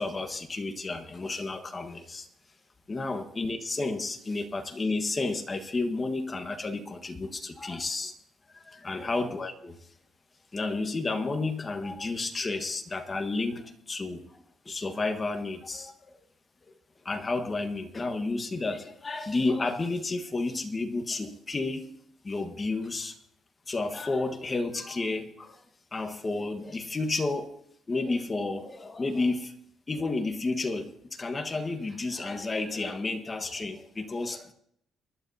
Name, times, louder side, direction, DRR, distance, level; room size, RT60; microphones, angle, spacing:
voice 1, 0.0-2.3 2.9-8.1 8.5-9.8 10.5-14.4 14.6-16.2 17.0-21.9 22.2-23.2 23.7-25.6 25.9-27.6 27.9-29.5 29.9-34.5, left 3 dB, 25° left, 6 dB, 1.4 m, -31 dB
23.5 x 11.5 x 2.8 m, 0.72 s
cardioid pair, 125°, 0 cm